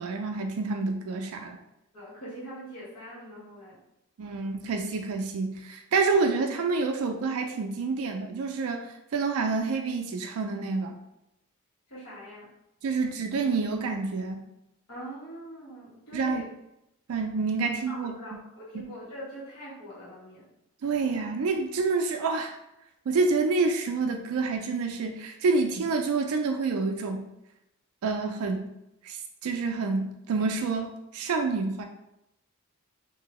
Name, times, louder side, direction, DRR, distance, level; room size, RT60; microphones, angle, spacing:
voice 1, 0.0-1.6 4.2-8.8 9.1-11.0 12.8-14.4 16.1-16.4 17.1-18.1 20.8-22.6 23.1-27.2 28.0-28.7 29.0-31.8, right 4 dB, 85° right, 4 dB, 0.4 m, -28 dB
voice 2, 1.9-3.8 11.9-12.5 14.9-16.4 17.9-20.5, equal, 90° left, -7 dB, 1.4 m, -42 dB
2.9 x 2.7 x 2.9 m, 0.85 s
head